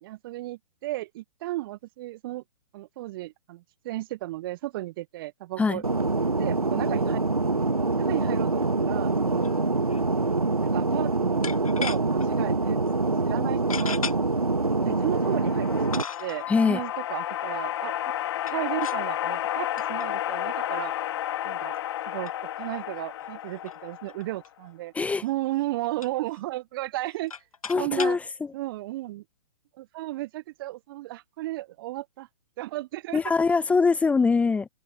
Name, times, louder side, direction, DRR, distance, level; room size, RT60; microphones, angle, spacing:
voice 1, 0.0-2.4 2.7-5.8 6.4-7.2 8.0-9.5 10.6-12.8 13.2-14.0 14.7-17.9 18.5-20.9 21.4-21.7 22.1-22.3 22.6-24.9 25.2-27.3 27.7-28.2 28.5-29.2 29.8-32.3 32.6-33.2, right 17 dB, 40° right, 1.0 m, -34 dB
Fixed-wing aircraft airplane, 5.8-16.0, right 3 dB, 85° right, 1.4 m, -25 dB
sound 1, 9.4-9.6 9.9-10.0 11.4-12.3 12.8-12.9 13.7-14.2 15.0-15.1 15.9-16.4 18.4-19.1 19.8-20.1 20.5-20.6 21.3-21.4 21.7-21.9 22.3-22.4 22.6-22.7 23.0-23.1 23.5-24.5 25.1-25.3 25.6-26.4 27.0-28.2, left 6 dB, 70° left, 1.1 m, -37 dB
sound 2, 14.9-24.4, left 12 dB, 50° left, 3.7 m, -32 dB
voice 2, 16.5-16.8 24.9-25.2 27.7-28.5 33.1-34.7, left 4 dB, 5° left, 0.9 m, -23 dB
open air
figure-of-eight pair, 120°, 18 cm